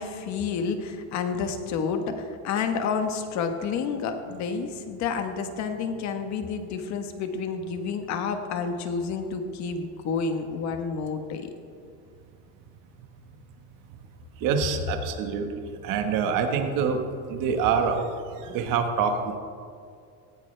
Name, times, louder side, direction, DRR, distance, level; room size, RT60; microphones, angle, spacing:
voice 1, 0.0-11.5, left 5 dB, 40° left, 6 dB, 1.4 m, -30 dB
voice 2, 14.4-17.0 17.3-18.1 18.4-19.3, right 6 dB, 50° right, 5 dB, 1.6 m, -26 dB
18.5 x 15.5 x 3.4 m, 2.3 s
cardioid pair, 170°, 42 cm